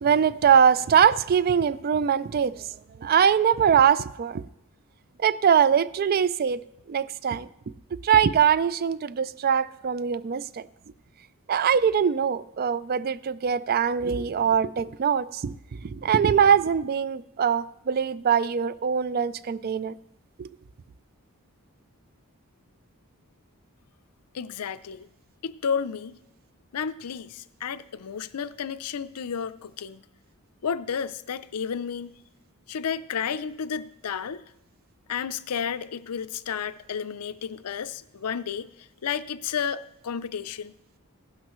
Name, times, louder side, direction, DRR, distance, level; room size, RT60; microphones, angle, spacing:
voice 1, 0.0-2.7 3.0-4.4 5.2-7.5 8.0-10.7 11.5-15.5 15.8-19.9 20.4-20.6, right 7 dB, 45° right, 0.4 m, -22 dB
voice 2, 24.3-25.1 25.4-26.2 26.7-30.0 30.6-32.2 32.7-34.4 35.1-38.7 39.0-40.7, left 7 dB, 85° left, 0.5 m, -32 dB
16.0 x 12.0 x 3.1 m
head